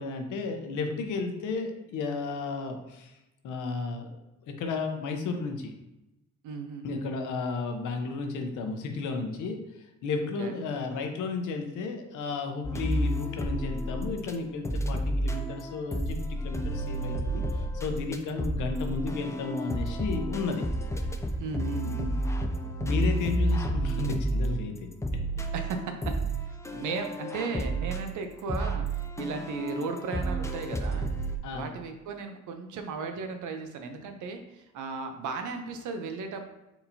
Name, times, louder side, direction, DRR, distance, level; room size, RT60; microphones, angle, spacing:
voice 1, 0.0-3.2 3.4-4.2 4.4-5.7 6.8-20.6 22.8-24.7 31.4-31.7, left 4 dB, 80° left, 5 dB, 0.8 m, -33 dB
voice 2, 6.4-7.1 10.2-10.6 21.4-22.2 25.5-26.1 26.4-31.1 31.5-36.5, right 4 dB, 75° right, 6 dB, 0.7 m, -36 dB
sound 1, 12.6-14.3 14.6-31.4, right 1 dB, 10° left, 0.4 m, -31 dB
4.4 x 3.8 x 2.7 m, 0.94 s
cardioid pair, 90°, 30 cm